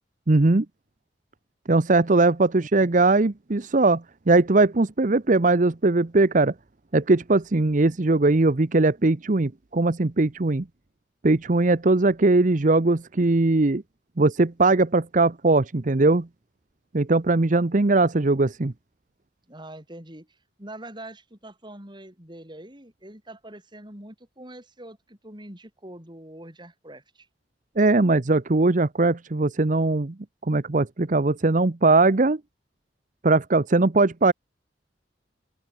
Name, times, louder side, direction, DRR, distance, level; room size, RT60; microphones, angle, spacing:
voice 1, 0.3-0.7 1.7-6.5 6.9-10.6 11.2-13.8 14.2-16.3 16.9-18.7 27.8-30.1 30.5-32.4 33.2-34.3, right 2 dB, 45° right, 0.8 m, -20 dB
voice 2, 19.5-27.3, right 1 dB, 25° right, 7.3 m, -44 dB
open air
head